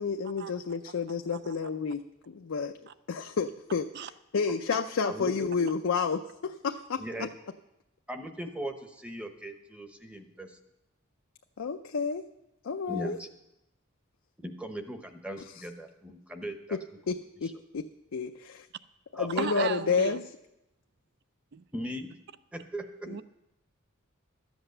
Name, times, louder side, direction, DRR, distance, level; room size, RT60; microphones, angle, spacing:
voice 1, 0.0-2.8 3.1-3.9 4.3-7.3 11.6-12.2 12.6-13.2 15.5-15.6 16.7-16.8 17.1-18.7 19.1-20.2 23.1-23.2, left 5 dB, 85° left, 0.5 m, -30 dB
voice 2, 5.0-5.5 7.0-7.3 8.1-10.6 12.9-13.3 14.4-16.8 19.1-19.7 21.7-22.1 22.5-22.9, right 1 dB, 5° right, 0.8 m, -38 dB
voice 3, 19.4-20.2 21.5-21.6 23.1-23.2, right 7 dB, 50° right, 0.4 m, -36 dB
13.0 x 8.0 x 6.6 m
head